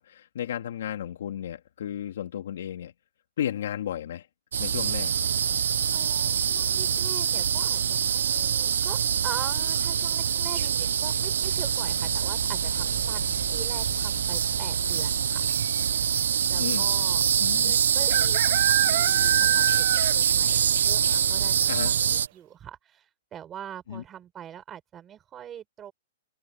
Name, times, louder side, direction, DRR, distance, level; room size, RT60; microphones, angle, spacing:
voice 1, 0.0-2.9 3.4-4.3 4.6-5.1 16.6-16.9 17.4-17.7 21.7-21.9 23.9-24.0, left 10 dB, 60° left, 2.7 m, -33 dB
sound 1, 4.5-22.3, right 8 dB, 80° right, 0.6 m, -25 dB
voice 2, 5.9-9.0 9.2-15.4 16.5-17.2 17.5-19.8 20.1-25.9, right 10 dB, 15° right, 6.2 m, -43 dB
sound 2, 10.1-16.5, left 40 dB or more, 25° left, 5.3 m, -49 dB
sound 3, 10.5-11.0 12.8-13.2 13.5-13.6 13.8-14.3 15.1-15.2 15.4-15.5 17.1-17.2 18.1-20.4 20.7-20.8 21.3-21.4 21.9-22.0, right 15 dB, 35° right, 0.4 m, -28 dB
hypercardioid pair, 175°, 0 cm